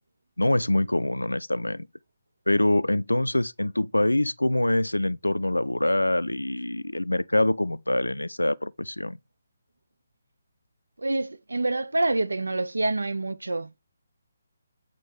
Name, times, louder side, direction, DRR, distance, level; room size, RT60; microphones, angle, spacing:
voice 1, 0.4-1.9 2.5-9.2, left 1 dB, 80° left, 0.3 m, -25 dB
voice 2, 11.0-13.8, right 2 dB, 70° right, 0.5 m, -27 dB
8.5 x 3.3 x 3.4 m
figure-of-eight pair, 140°, 0 cm